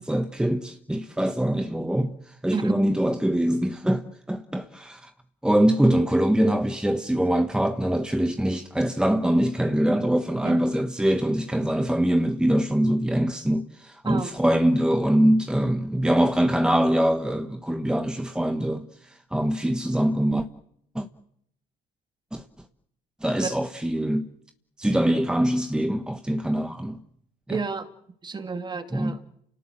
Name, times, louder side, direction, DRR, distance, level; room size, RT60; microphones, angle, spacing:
voice 1, 0.0-2.1 2.4-5.1 5.4-20.5 20.9-21.1 22.3-22.4 23.2-24.3 24.8-27.0 27.5-27.6 28.9-29.2, right 1 dB, 5° right, 1.3 m, -23 dB
voice 2, 14.0-14.5 23.4-23.5 27.5-27.9 28.2-29.2, right 5 dB, 25° right, 2.5 m, -31 dB
29.0 x 18.5 x 7.7 m
cardioid pair, 110°, 17 cm